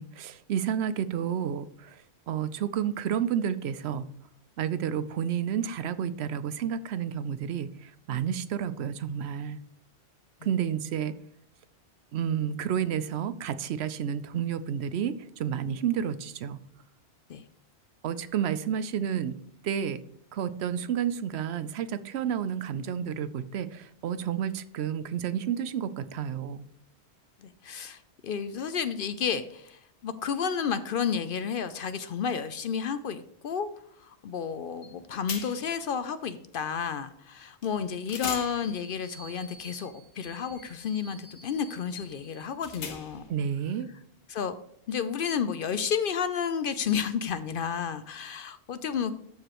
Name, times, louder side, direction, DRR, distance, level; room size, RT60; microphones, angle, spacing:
voice 1, 0.0-4.0 4.6-9.6 10.4-11.1 12.1-16.6 18.0-19.4 19.6-20.0 20.3-26.7 43.3-43.9, right 8 dB, 75° right, 13 dB, 0.8 m, -30 dB
voice 2, 27.4-33.7 34.0-43.2 44.3-44.5 44.9-49.1, left 7 dB, 60° left, 12 dB, 0.6 m, -31 dB
sound 1, 34.8-34.9 35.3-35.8 37.6-37.7 38.1-43.3, left 5 dB, 85° left, 1.3 m, -42 dB
13.0 x 4.9 x 3.0 m, 0.69 s
omnidirectional pair, 1.1 m